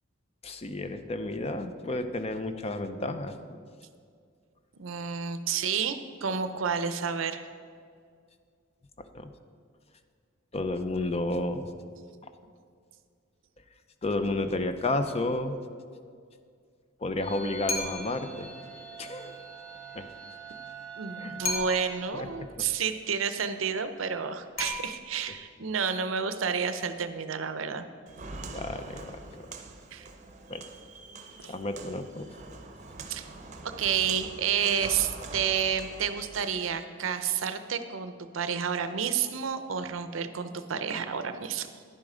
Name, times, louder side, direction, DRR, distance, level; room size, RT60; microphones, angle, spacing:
voice 1, 0.4-3.4 9.0-9.3 10.5-11.7 14.0-15.6 17.0-18.5 19.0-19.4 19.9-20.1 21.2-21.4 22.1-22.3 28.5-29.4 30.5-30.7 31.4-32.3, left 2 dB, 30° left, 9 dB, 0.5 m, -31 dB
voice 2, 4.8-7.5 21.0-27.8 29.9-30.1 31.4-31.5 33.1-33.3 33.6-41.7, right 7 dB, 75° right, 10 dB, 0.6 m, -30 dB
sound 1, 17.2-22.6, right 5 dB, 5° left, 1.5 m, -45 dB
sound 2, 17.7-18.3 21.4-22.1 24.6-25.4, left 2 dB, 70° left, 1.4 m, -34 dB
Walk footsteps, 28.1-36.8, right 3 dB, 35° right, 0.7 m, -44 dB
11.0 x 7.4 x 5.0 m, 2.2 s
head